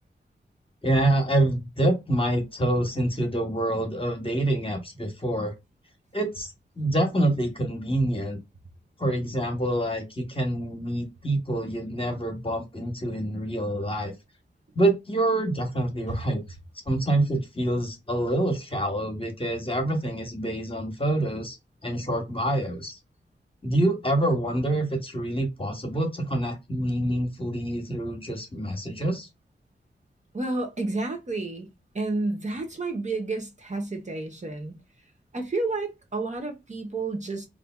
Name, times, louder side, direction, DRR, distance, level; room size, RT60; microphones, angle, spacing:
voice 1, 0.8-5.5 6.1-6.5 6.8-8.4 9.0-14.1 14.7-16.4 16.9-21.6 21.8-23.0 23.6-29.3, right 1 dB, 30° left, 1.1 m, -26 dB
voice 2, 30.3-31.7 31.9-34.7 35.3-37.5, right 3 dB, 40° right, 0.9 m, -30 dB
3.2 x 2.6 x 2.2 m
wide cardioid pair, 65°, 19 cm